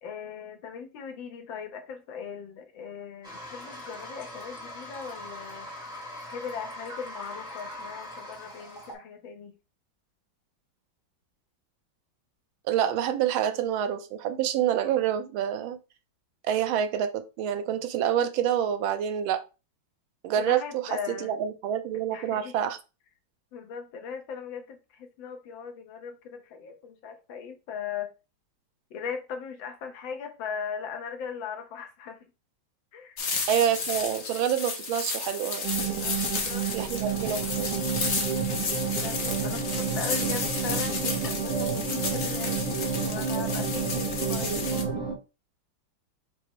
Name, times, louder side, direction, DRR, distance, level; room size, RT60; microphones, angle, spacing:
voice 1, 0.0-5.7 6.3-9.5 20.4-21.3 22.1-22.6 23.5-28.1 28.9-32.3 32.9-33.2 36.0-36.7 39.0-44.8, left 6 dB, 75° left, 5 dB, 1.5 m, -39 dB
Toilet flush, 3.2-8.9, left 1 dB, 5° right, 0.9 m, -41 dB
voice 2, 12.6-15.8 16.4-19.4 20.2-20.8 21.2-22.8 33.5-36.1 36.7-37.7 44.4-44.7, right 9 dB, 80° right, 9 dB, 1.4 m, -27 dB
sound 1, 33.2-44.8, left 4 dB, 50° left, 0.8 m, -32 dB
sound 2, 35.6-45.1, right 6 dB, 65° right, 1.5 m, -30 dB
5.4 x 2.1 x 4.5 m, 0.30 s
omnidirectional pair, 2.2 m